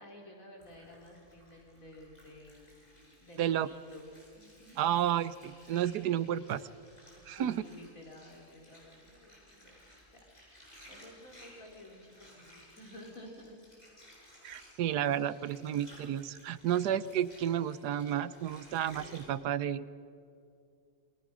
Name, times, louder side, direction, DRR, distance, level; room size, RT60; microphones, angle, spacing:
voice 1, 0.0-2.6 3.2-4.8 7.2-13.6, left 1 dB, 55° left, 0 dB, 3.7 m, -52 dB
Water, 0.6-19.3, equal, 25° left, 8.1 m, -58 dB
voice 2, 3.4-3.7 4.8-6.6 7.3-7.5 14.4-19.9, right 10 dB, 85° right, 16 dB, 1.3 m, -31 dB
28.0 x 24.0 x 6.2 m, 2.4 s
omnidirectional pair, 1.7 m